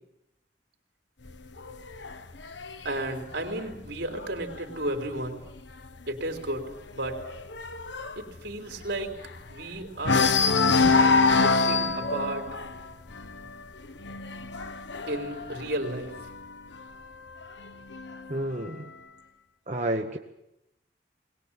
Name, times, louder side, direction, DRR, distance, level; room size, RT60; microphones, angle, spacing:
sound 1, 1.3-4.9 5.3-5.6 5.9-6.0 6.4-9.6 10.0-16.5 17.4-18.4, left 4 dB, 80° left, 1.3 m, -26 dB
voice 1, 2.8-5.4 6.1-7.2 8.2-9.1 9.5-10.3 11.2-12.5 15.1-16.2, right 1 dB, 75° right, 4 dB, 3.7 m, -33 dB
voice 2, 18.3-18.9 19.7-20.2, right 1 dB, 40° right, 2 dB, 1.1 m, -30 dB
21.5 x 19.0 x 8.9 m, 0.85 s
head